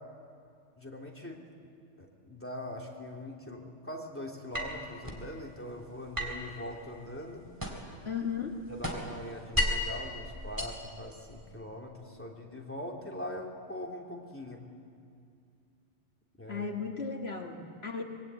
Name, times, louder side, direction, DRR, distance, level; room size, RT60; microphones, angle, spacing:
voice 1, 0.8-1.4 2.0-7.4 8.7-14.6 16.4-16.7, left 1 dB, 10° left, 0 dB, 3.0 m, -42 dB
sound 1, 4.5-5.3 6.1-8.0 8.3-10.0 10.4-11.5, left 1 dB, 15° right, 3.5 m, -34 dB
voice 2, 8.1-8.6 16.5-18.0, left 5 dB, 60° left, 2 dB, 1.9 m, -35 dB
25.0 x 22.0 x 9.1 m, 2.4 s
omnidirectional pair, 1.2 m